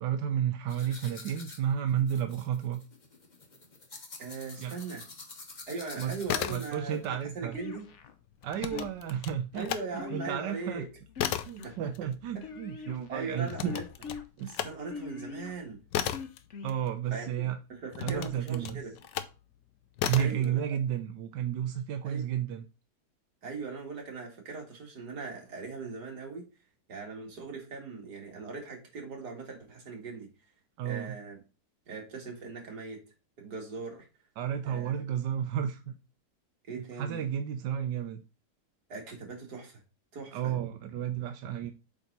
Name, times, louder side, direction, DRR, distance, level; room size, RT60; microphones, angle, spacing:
voice 1, 0.0-2.8 4.6-4.7 6.0-6.2 6.5-7.6 8.4-9.7 10.1-10.9 11.4-13.8 14.4-14.5 16.6-17.6 18.0-18.8 20.0-22.7 30.8-31.1 34.4-35.9 36.8-38.2 40.3-41.7, right 9 dB, 90° right, 1.3 m, -32 dB
sound 1, 0.7-7.0, left 3 dB, 30° left, 1.1 m, -48 dB
voice 2, 4.2-5.1 5.7-7.9 9.5-10.9 11.6-11.9 12.3-12.5 13.1-13.8 14.4-15.8 17.1-19.0 20.1-20.8 22.0-22.3 23.4-26.5 26.9-30.3 30.8-31.4 31.9-33.0 33.4-34.1 34.6-35.0 36.6-37.3 38.9-39.8 40.1-40.5, right 4 dB, 65° right, 2.7 m, -40 dB
sound 2, 6.3-7.1 7.4-9.9 10.3-17.3 17.9-19.4 20.0-20.5, left 10 dB, 90° left, 1.3 m, -36 dB
sound 3, 7.5-8.1 8.7-9.3 10.0-10.7 11.1-11.8 12.4-13.1 13.7-14.2 14.9-15.5 16.1-16.8, left 6 dB, 50° left, 1.1 m, -42 dB
8.2 x 3.7 x 4.0 m
omnidirectional pair, 1.9 m